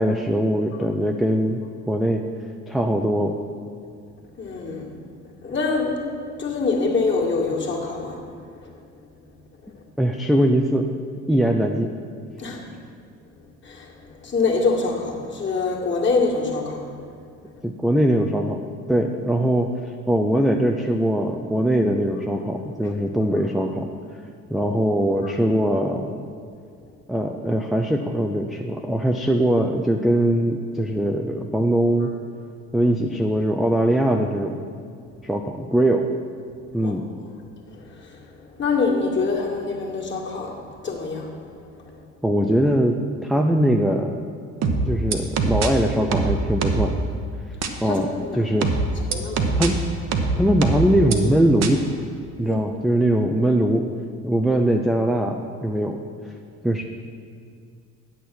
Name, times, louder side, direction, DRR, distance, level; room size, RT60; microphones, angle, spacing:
voice 1, 0.0-1.6 1.9-2.2 2.7-3.4 10.0-10.9 11.3-11.9 17.6-18.6 18.9-23.9 24.5-26.2 27.1-32.1 32.7-34.6 35.2-36.1 36.7-37.0 42.2-44.2 44.9-46.9 47.8-48.1 48.4-48.7 49.6-49.8 50.3-51.8 52.4-53.8 54.2-56.0 56.6-56.8, right 1 dB, ahead, 3 dB, 0.4 m, -21 dB
voice 2, 4.4-5.0 5.4-8.6 12.4-12.6 13.6-17.1 25.2-25.3 36.8-36.9 37.7-38.2 38.5-41.3 41.9-42.0 47.8-48.4 49.1-49.6 52.4-52.6, left 4 dB, 30° left, -2 dB, 2.1 m, -25 dB
sound 1, 44.6-45.7 46.1-46.9 47.6-47.7 48.6-49.7 50.1-51.1 51.6-51.7, right 4 dB, 40° right, 1.0 m, -22 dB
9.2 x 6.5 x 6.0 m, 2.3 s
figure-of-eight pair, 55°, 39 cm